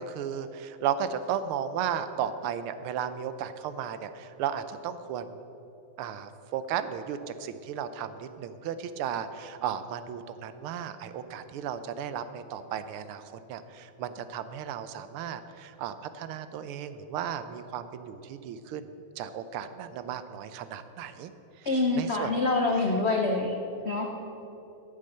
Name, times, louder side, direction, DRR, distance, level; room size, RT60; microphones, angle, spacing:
voice 1, 0.0-5.4 6.0-18.9 19.2-21.3 21.6-21.7 21.9-22.3 22.8-22.9, right 8 dB, 80° right, 11 dB, 1.5 m, -35 dB
voice 2, 21.7-23.5 23.8-24.1, left 3 dB, 75° left, 2 dB, 0.6 m, -26 dB
13.0 x 7.4 x 6.7 m, 2.9 s
omnidirectional pair, 2.4 m